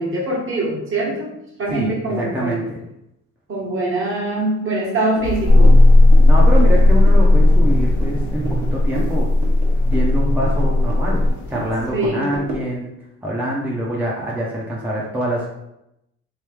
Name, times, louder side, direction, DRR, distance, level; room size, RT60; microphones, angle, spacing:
voice 1, 0.0-1.3 1.6-2.6 3.5-5.8 11.9-12.2, right 2 dB, 40° right, -4 dB, 1.3 m, -23 dB
voice 2, 1.7-2.8 6.3-9.3 9.8-11.2 11.5-12.9 13.2-15.5, right 1 dB, 5° right, -4 dB, 0.6 m, -25 dB
sound 1, 5.1-12.7, right 3 dB, 65° right, 1.2 m, -35 dB
sound 2, 5.2-11.9, right 1 dB, 80° left, 0.6 m, -30 dB
sound 3, 5.5-11.3, left 2 dB, 80° right, 1.0 m, -13 dB
3.1 x 2.6 x 3.4 m, 0.86 s
cardioid pair, 90°, 30 cm